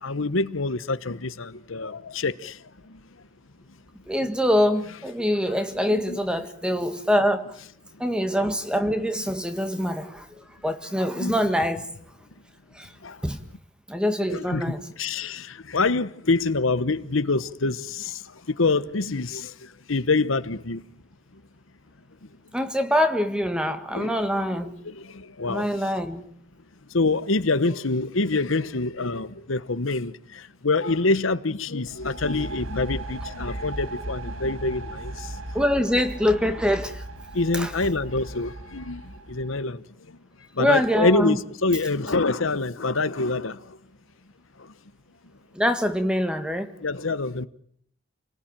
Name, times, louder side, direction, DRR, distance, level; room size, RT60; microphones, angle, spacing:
voice 1, 0.0-3.0 5.9-6.2 11.1-11.4 13.0-13.2 14.3-20.8 23.9-24.2 24.8-25.7 26.9-35.4 37.3-40.2 40.5-43.8 44.6-44.7 46.8-47.5, left 3 dB, 80° left, 1.1 m, -26 dB
voice 2, 4.1-7.5 8.0-11.9 12.7-12.9 13.2-13.4 13.9-14.8 22.5-24.7 25.4-26.2 35.5-37.0 37.5-37.7 40.6-41.4 45.5-46.7, equal, 5° right, 1.6 m, -24 dB
sound 1, 31.9-39.6, right 1 dB, 85° right, 1.7 m, -37 dB
29.0 x 19.0 x 9.0 m
head